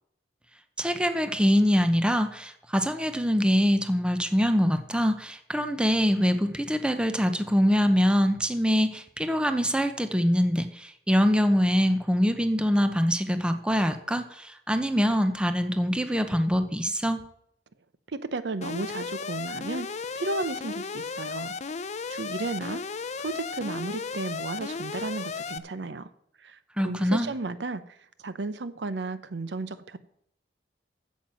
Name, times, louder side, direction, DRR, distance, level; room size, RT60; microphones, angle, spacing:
voice 1, 0.8-17.2 26.8-27.3, equal, 5° right, 8 dB, 0.7 m, -24 dB
voice 2, 18.1-21.5 22.1-22.8 23.2-26.1 26.4-26.6 26.8-30.0, right 3 dB, 75° right, 14 dB, 0.6 m, -34 dB
Alarm, 18.6-25.6, left 5 dB, 40° left, 0.5 m, -35 dB
8.9 x 7.4 x 7.6 m, 0.72 s
head